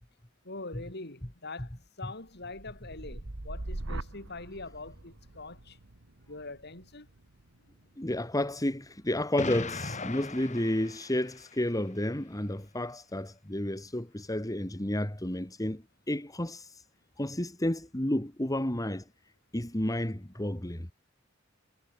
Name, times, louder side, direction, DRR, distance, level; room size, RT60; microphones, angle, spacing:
voice 1, 0.4-5.8 6.3-7.1, left 3 dB, 55° left, 4.8 m, -43 dB
sound 1, 2.2-10.3 10.7-11.2, right 2 dB, 75° right, 1.6 m, -44 dB
voice 2, 8.0-16.8 17.2-19.0 19.5-20.9, left 1 dB, 20° left, 1.9 m, -31 dB
Explosion, 9.4-11.6, left 3 dB, 35° left, 2.6 m, -38 dB
head